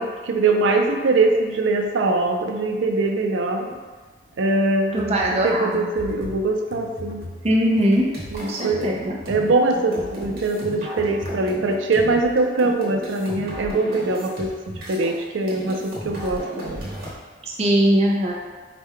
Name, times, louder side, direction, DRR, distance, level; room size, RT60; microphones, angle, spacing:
voice 1, 0.0-3.7 4.4-7.2 8.3-8.9 9.3-16.9, right 2 dB, 85° right, 4 dB, 0.5 m, -22 dB
sound 1, 4.9-12.6, left 2 dB, 50° left, 0.4 m, -40 dB
voice 2, 4.9-5.7 7.4-8.1 8.4-9.1 17.4-18.3, equal, 35° right, -2 dB, 0.5 m, -20 dB
sound 2, 7.7-15.2 15.5-17.1, equal, 50° right, 1.1 m, -34 dB
4.7 x 2.2 x 3.6 m, 1.4 s
head